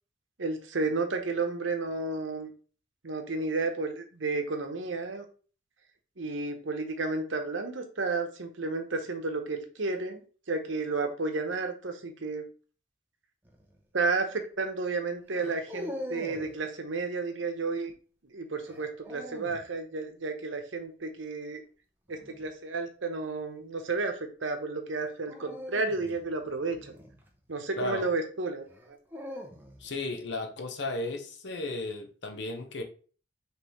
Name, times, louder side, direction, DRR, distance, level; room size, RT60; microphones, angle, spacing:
voice 1, 0.4-2.5 3.0-5.3 6.2-10.2 10.5-12.4 13.9-17.9 18.2-21.6 22.1-27.0 27.5-29.0, right 3 dB, 80° right, 0.9 m, -32 dB
sound 1, 13.4-13.8 15.3-16.6 18.7-19.6 22.1-22.5 25.3-27.6 28.7-30.0, equal, 10° right, 0.6 m, -42 dB
voice 2, 27.7-28.1 29.8-32.8, left 2 dB, 65° left, 0.8 m, -34 dB
5.4 x 3.2 x 3.1 m
head